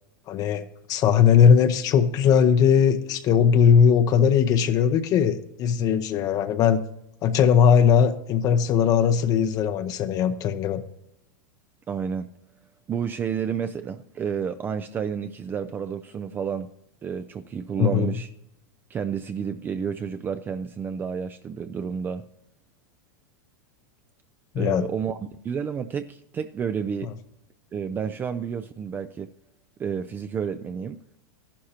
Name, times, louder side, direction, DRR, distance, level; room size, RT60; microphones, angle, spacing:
voice 1, 0.3-6.8 7.2-10.8 17.8-18.1 24.5-24.9, left 7 dB, 35° left, 9 dB, 0.6 m, -19 dB
voice 2, 11.9-12.3 12.9-16.7 17.0-18.3 18.9-22.2 24.6-25.2 25.4-27.1 27.7-29.3 29.8-31.0, right 7 dB, 20° right, 9 dB, 0.4 m, -30 dB
13.0 x 11.5 x 2.9 m, 0.80 s
supercardioid pair, 135°, 11 cm